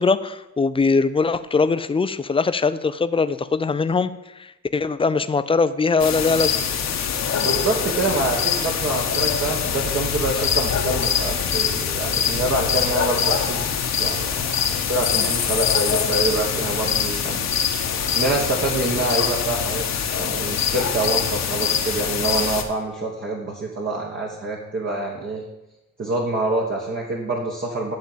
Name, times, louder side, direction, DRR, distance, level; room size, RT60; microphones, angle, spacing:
voice 1, 0.0-4.1 4.4-6.6, left 4 dB, 20° left, 13 dB, 0.4 m, -21 dB
sound 1, 6.0-22.6, left 7 dB, 60° left, 1.2 m, -23 dB
voice 2, 7.3-13.7 14.0-17.4 18.1-19.8 20.2-25.4 26.0-27.9, right 2 dB, 40° right, -2 dB, 1.4 m, -26 dB
10.5 x 3.8 x 7.4 m, 0.95 s
cardioid pair, 90°, 30 cm